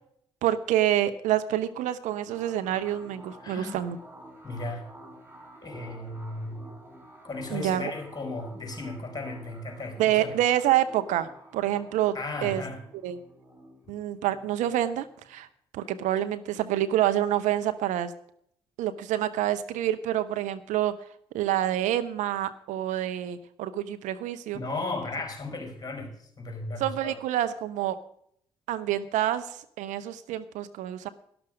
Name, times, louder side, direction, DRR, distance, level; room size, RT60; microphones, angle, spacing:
voice 1, 0.4-4.0 7.5-7.9 10.0-12.1 12.4-12.6 13.0-13.2 13.9-15.5 15.7-18.1 18.8-21.0 21.3-24.6 26.8-28.0 28.7-31.1, right 12 dB, 65° right, 0.7 m, -27 dB
sound 1, 2.3-15.5, right 1 dB, 15° right, 5.2 m, -50 dB
voice 2, 3.4-3.8 4.4-4.9 5.6-6.7 7.2-10.3 12.1-12.8 24.5-27.2, left 2 dB, 30° left, 5.0 m, -35 dB
12.0 x 12.0 x 5.1 m
figure-of-eight pair, 40°, 13 cm